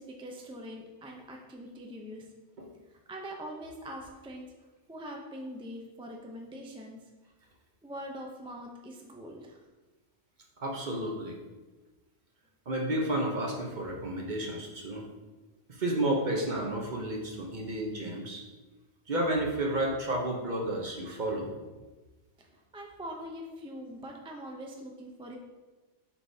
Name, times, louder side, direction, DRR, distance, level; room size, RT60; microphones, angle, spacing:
voice 1, 0.0-2.3 2.9-4.5 4.9-7.0 7.8-9.6 22.4-22.5 22.7-25.4, equal, 5° right, 0 dB, 0.5 m, -43 dB
voice 2, 10.6-11.4 12.7-15.0 15.7-18.4 19.1-21.5, right 1 dB, 45° right, 0 dB, 1.0 m, -31 dB
7.2 x 5.2 x 2.8 m, 1.2 s
omnidirectional pair, 1.2 m